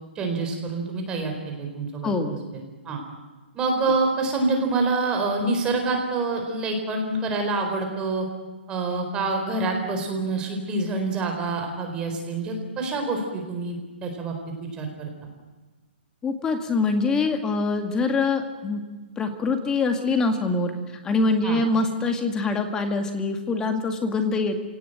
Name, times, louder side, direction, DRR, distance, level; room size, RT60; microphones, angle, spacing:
voice 1, 0.2-2.1 2.8-3.0 3.5-8.3 8.7-14.3 14.6-15.1 21.4-21.6, right 3 dB, 15° right, 3 dB, 4.2 m, -26 dB
voice 2, 2.0-2.4 16.2-18.8 19.2-20.7 21.0-24.6, left 3 dB, 10° left, 6 dB, 2.1 m, -24 dB
27.0 x 18.0 x 9.1 m, 1.3 s
hypercardioid pair, 160°, 6 cm